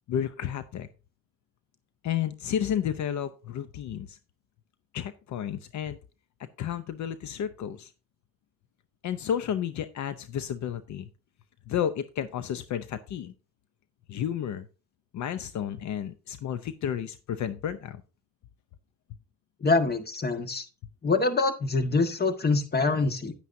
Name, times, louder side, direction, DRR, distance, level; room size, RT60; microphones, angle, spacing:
voice 1, 0.1-0.9 2.0-4.2 4.9-6.0 6.4-7.9 9.0-11.1 11.7-13.3 14.1-14.7 15.1-18.0, left 9 dB, 70° left, 12 dB, 0.7 m, -32 dB
voice 2, 19.6-20.7 21.0-23.3, left 3 dB, 30° left, 8 dB, 1.6 m, -25 dB
9.9 x 9.5 x 2.7 m, 0.32 s
cardioid pair, 90°, 30 cm